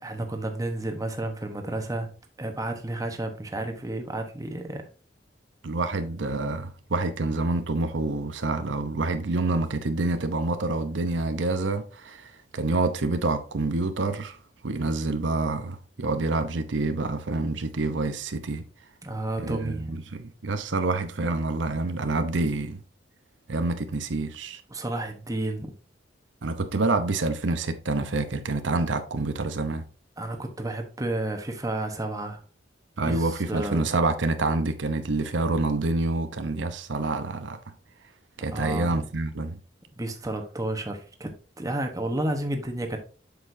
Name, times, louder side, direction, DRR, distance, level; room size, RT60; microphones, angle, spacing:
voice 1, 0.0-2.1 2.4-4.9 19.0-20.0 24.7-25.7 30.2-32.4 33.0-33.9 38.5-38.9 40.0-41.3 41.6-43.0, right 1 dB, 20° right, 1.1 m, -31 dB
voice 2, 5.6-14.4 14.6-18.7 19.4-22.8 23.5-24.6 26.4-29.8 33.0-37.6 38.4-39.6, right 3 dB, 85° right, 0.8 m, -27 dB
7.8 x 6.6 x 2.7 m
head